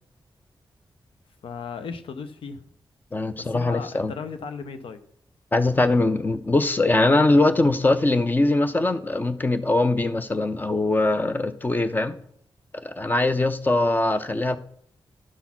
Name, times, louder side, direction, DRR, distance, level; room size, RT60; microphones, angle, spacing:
voice 1, 1.4-2.6 3.4-5.0, left 5 dB, 90° left, 0.6 m, -36 dB
voice 2, 3.1-4.1 5.5-12.2 12.8-14.6, left 2 dB, 20° left, 0.5 m, -22 dB
11.5 x 4.1 x 5.8 m
wide cardioid pair, 160°, 9 cm